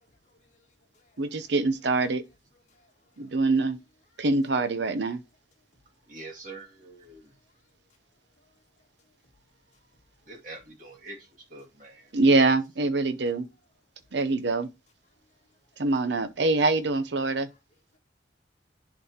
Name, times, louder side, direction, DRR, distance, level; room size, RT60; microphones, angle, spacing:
voice 1, 0.0-1.5 2.5-3.4 4.1-4.3 7.3-7.6 8.4-8.5 9.0-9.1 9.7-10.0 15.2-15.8 17.5-17.6 17.9-18.0, left 2 dB, 40° left, 2.0 m, -67 dB
voice 2, 1.2-2.2 3.2-3.8 4.2-5.2 12.1-13.5 14.1-14.7 15.8-17.5, right 3 dB, 65° right, 0.6 m, -24 dB
voice 3, 6.1-7.4 10.3-12.1, right 2 dB, 40° right, 2.1 m, -45 dB
11.0 x 4.1 x 2.9 m
head